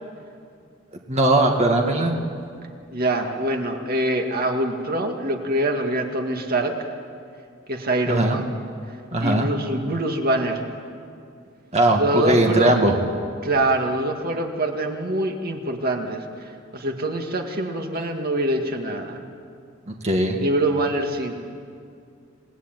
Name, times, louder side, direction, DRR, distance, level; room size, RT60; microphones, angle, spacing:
voice 1, 1.1-2.1 8.1-8.4 9.1-9.5 11.7-13.0 19.9-20.4, right 1 dB, 35° right, 2 dB, 2.0 m, -19 dB
voice 2, 2.9-6.9 7.7-8.5 9.2-10.6 12.0-12.8 13.4-19.2 20.4-21.3, right 1 dB, 50° right, 3 dB, 2.1 m, -24 dB
28.0 x 18.5 x 9.2 m, 2.3 s
head